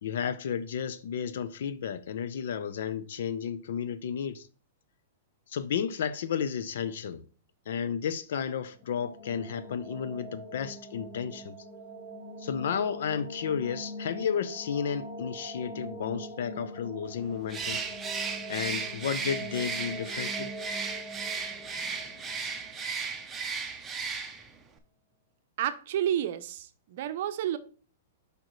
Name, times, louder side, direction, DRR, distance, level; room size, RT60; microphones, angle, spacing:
voice 1, 0.0-4.5 5.5-7.2 7.7-11.6 12.4-17.8 18.5-20.5, left 7 dB, 70° left, 0.6 m, -32 dB
sound 1, 8.7-23.6, equal, 40° left, 1.9 m, -43 dB
Bird, 17.5-24.6, right 5 dB, 15° right, 0.8 m, -35 dB
voice 2, 25.6-27.6, right 11 dB, 55° right, 0.6 m, -30 dB
6.4 x 5.1 x 3.1 m
hypercardioid pair, 140°, 0 cm